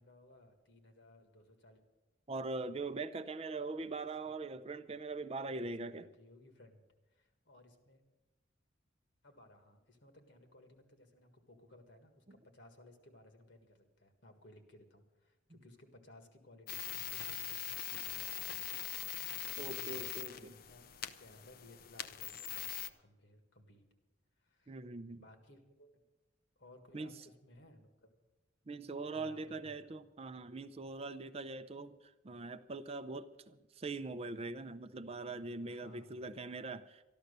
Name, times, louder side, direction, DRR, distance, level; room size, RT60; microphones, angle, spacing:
voice 1, 0.0-1.8 3.8-3.9 5.5-6.8 7.1-8.0 9.2-18.9 19.5-20.9 21.2-23.8 24.4-24.8 25.1-26.0 26.6-28.1 29.1-29.8 35.7-36.2, left 1 dB, 65° left, 6 dB, 1.8 m, -60 dB
voice 2, 2.3-6.1 15.5-15.6 19.6-20.3 24.7-25.2 26.9-27.1 28.7-37.0, right 3 dB, 30° right, 10 dB, 0.5 m, -42 dB
sound 1, 16.7-22.9, left 11 dB, 50° left, 0.6 m, -42 dB
13.0 x 12.0 x 6.7 m, 1.1 s
head